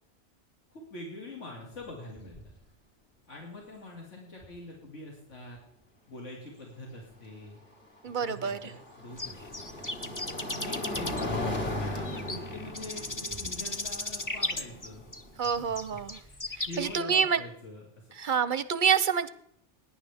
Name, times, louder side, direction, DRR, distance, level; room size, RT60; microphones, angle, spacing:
voice 1, 0.7-2.4 3.3-5.6 6.1-7.6 8.2-9.8 10.4-11.4 11.8-15.1 15.4-16.4 16.7-18.1, left 1 dB, 90° left, -2 dB, 2.6 m, -44 dB
sound 1, 1.7-1.9 2.2-2.6 4.4-4.5 7.5-15.6, left 1 dB, 45° left, 2.2 m, -37 dB
voice 2, 8.0-8.7 15.4-16.2 16.5-17.4 18.1-19.3, right 7 dB, 55° right, 14 dB, 0.6 m, -27 dB
sound 2, 9.2-17.0, left 2 dB, 20° left, 0.7 m, -36 dB
20.5 x 10.0 x 3.5 m, 0.72 s
omnidirectional pair, 1.2 m